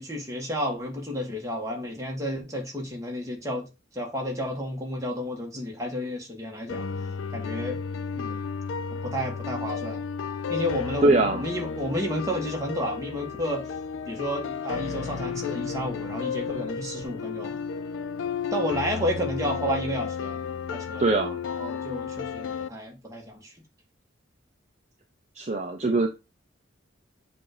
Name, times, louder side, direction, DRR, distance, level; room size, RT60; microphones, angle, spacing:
voice 1, 0.0-3.7 3.9-6.8 7.3-7.8 8.1-8.4 9.0-10.0 10.5-13.7 14.1-17.6 18.5-20.4 20.7-21.0 21.4-23.5, equal, 15° right, 1.5 m, -31 dB
sound 1, 6.7-22.7, left 6 dB, 85° left, 0.4 m, -33 dB
voice 2, 11.0-11.4 21.0-21.4 25.4-26.1, right 2 dB, 35° right, 0.6 m, -22 dB
7.4 x 2.6 x 4.8 m
head